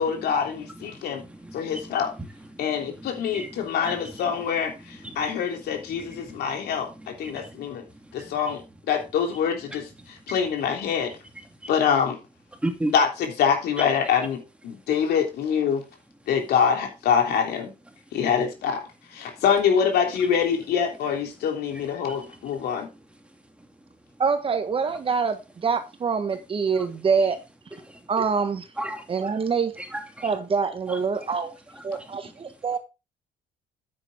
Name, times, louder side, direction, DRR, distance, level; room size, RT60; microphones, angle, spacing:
voice 1, 0.0-1.2 1.5-2.1 2.6-7.8 8.1-8.6 8.9-11.1 11.7-12.2 12.9-15.8 16.3-17.7 18.1-18.8 19.1-22.9, left 7 dB, 70° left, 3 dB, 3.3 m, -25 dB
voice 2, 0.9-2.0 2.5-4.1 5.0-5.2 5.9-6.4 7.0-7.7 8.0-8.3 12.6-12.9 13.8-13.9 22.1-22.2 26.7-26.9 27.8-28.0 28.8-29.0 29.8-30.3 30.9-31.0 32.0-32.1, right 1 dB, 5° right, 4 dB, 2.5 m, -35 dB
voice 3, 24.2-27.4 28.1-28.6 29.1-29.7 30.2-31.5 31.8-32.8, right 5 dB, 35° right, 9 dB, 1.3 m, -25 dB
9.2 x 8.9 x 3.7 m, 0.27 s
cardioid pair, 110°, 17 cm